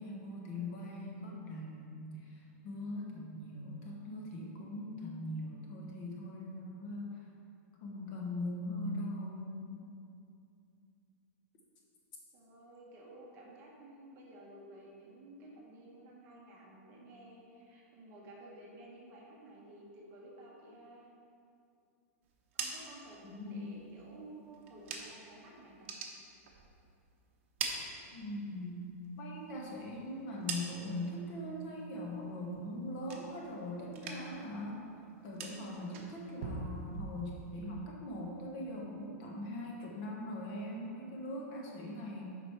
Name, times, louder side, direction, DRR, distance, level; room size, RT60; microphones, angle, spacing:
voice 1, 0.0-7.2 7.8-9.8 23.2-23.7 28.1-28.8 29.1-34.8 35.2-42.4, left 1 dB, 35° left, -1 dB, 1.1 m, -41 dB
voice 2, 12.3-21.1 22.5-25.9, right 1 dB, 30° right, -3 dB, 1.3 m, -53 dB
sound 1, 22.3-25.4 25.7-27.0 27.3-28.6 29.0-31.1 31.5-32.0 32.3-33.6 33.9-34.5 34.7-37.6, right 5 dB, 50° right, 0.9 m, -44 dB
7.7 x 5.0 x 4.6 m, 2.5 s
supercardioid pair, 170°, 8 cm